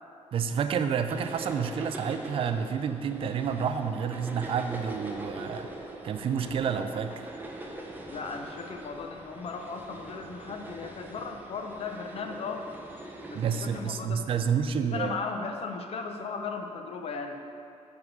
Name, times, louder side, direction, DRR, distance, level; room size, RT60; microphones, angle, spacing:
voice 1, 0.3-5.7 6.0-7.1 13.3-15.2, right 7 dB, 45° right, 8 dB, 0.4 m, -29 dB
sound 1, 1.1-13.8, right 1 dB, 15° right, 0.7 m, -42 dB
voice 2, 8.1-12.7 13.3-14.5 14.7-17.4, left 4 dB, 55° left, 5 dB, 0.6 m, -37 dB
7.8 x 3.6 x 6.0 m, 2.5 s
cardioid pair, 145°, 12 cm